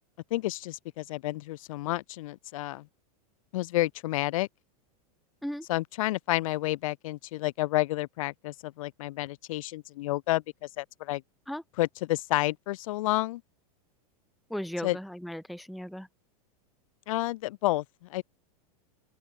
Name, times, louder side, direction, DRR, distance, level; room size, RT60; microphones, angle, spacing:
voice 1, 0.3-2.9 3.5-4.5 5.7-11.2 11.8-13.4 14.8-15.0 17.1-18.2, left 17 dB, 60° left, 0.8 m, -30 dB
voice 2, 14.5-16.1, equal, ahead, 0.6 m, -36 dB
open air
supercardioid pair, 170°, 19 cm